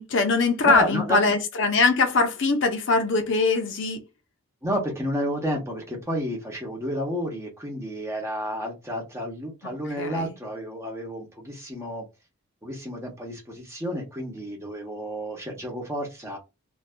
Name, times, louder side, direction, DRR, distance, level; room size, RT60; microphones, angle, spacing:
voice 1, 0.0-4.0 9.6-10.3, left 3 dB, 60° left, 0.6 m, -22 dB
voice 2, 0.6-1.3 4.6-12.0 12.6-16.4, equal, 15° right, 0.8 m, -31 dB
2.6 x 2.2 x 2.5 m
head